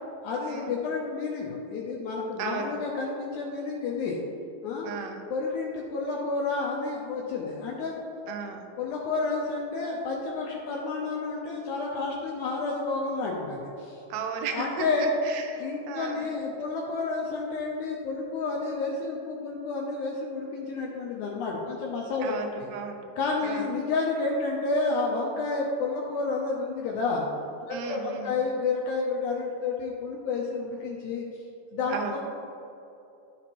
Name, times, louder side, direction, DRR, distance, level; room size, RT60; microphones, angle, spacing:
voice 1, 0.2-4.2 4.6-4.9 5.3-8.0 8.8-14.0 14.5-15.2 15.6-22.3 22.6-22.7 23.2-27.3 27.7-31.3 31.7-32.2, left 3 dB, 75° left, -2 dB, 1.9 m, -30 dB
voice 2, 2.4-2.8 4.8-5.2 8.3-8.7 14.1-16.3 22.2-23.0 23.4-23.6 27.7-28.4 31.9-32.2, right 5 dB, 85° right, 4 dB, 1.5 m, -35 dB
12.5 x 4.2 x 3.0 m, 2.8 s
omnidirectional pair, 3.9 m